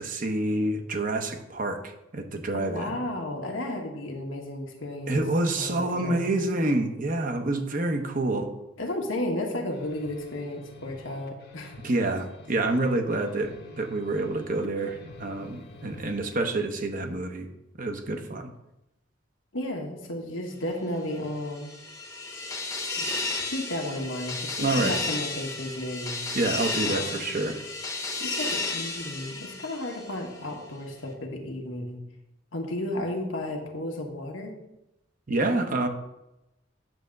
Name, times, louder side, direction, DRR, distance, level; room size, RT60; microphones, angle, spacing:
voice 1, 0.0-3.0 5.1-8.5 11.8-17.5 17.8-18.5 24.6-25.0 26.3-27.6 35.3-35.9, right 2 dB, 45° right, 5 dB, 0.9 m, -27 dB
voice 2, 2.5-5.2 5.6-6.4 8.8-11.7 19.5-21.7 22.9-23.1 23.5-26.2 26.8-27.3 28.2-32.0 32.5-34.6, left 1 dB, 75° left, 1 dB, 1.5 m, -33 dB
sound 1, 9.7-16.4, left 2 dB, 50° left, 1.1 m, -48 dB
sound 2, 21.3-30.4, left 3 dB, 15° left, 1.0 m, -33 dB
9.0 x 3.5 x 6.5 m, 0.90 s
head